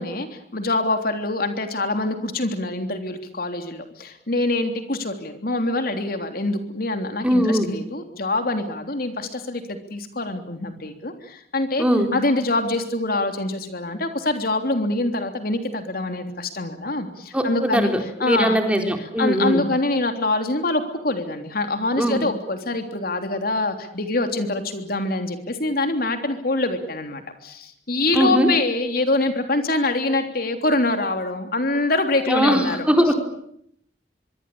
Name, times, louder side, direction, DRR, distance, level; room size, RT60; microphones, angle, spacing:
voice 1, 0.0-11.9 12.1-17.9 18.2-18.6 19.2-33.1, left 2 dB, 55° left, 6 dB, 3.4 m, -25 dB
voice 2, 7.2-7.7 11.8-12.1 17.3-19.6 22.0-22.2 28.1-28.5 32.3-33.1, equal, 5° right, 4 dB, 4.0 m, -20 dB
24.5 x 24.0 x 8.7 m, 0.71 s
head